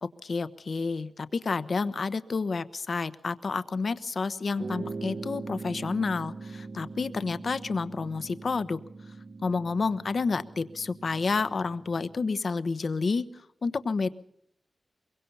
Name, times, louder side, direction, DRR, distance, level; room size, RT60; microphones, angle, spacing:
voice 1, 0.0-8.8 9.4-13.3 13.6-14.1, left 4 dB, 50° left, 13 dB, 1.0 m, -30 dB
sound 1, 4.6-12.3, right 3 dB, 55° right, 1.6 m, -41 dB
24.0 x 23.0 x 5.6 m, 0.72 s
wide cardioid pair, 160°, 0 cm